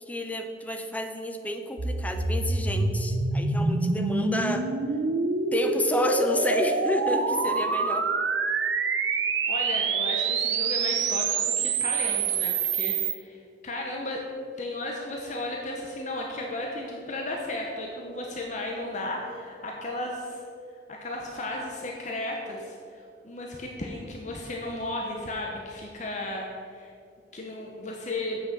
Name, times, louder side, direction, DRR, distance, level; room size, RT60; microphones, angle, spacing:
voice 1, 0.1-4.7 5.5-8.1, left 1 dB, 10° left, 6 dB, 0.7 m, -30 dB
sound 1, 1.8-13.1, right 4 dB, 85° right, 0.9 m, -26 dB
voice 2, 9.5-14.2 14.6-20.4 20.9-26.9 27.3-28.4, left 2 dB, 40° left, 0 dB, 1.0 m, -34 dB
8.1 x 6.5 x 7.4 m, 2.4 s
head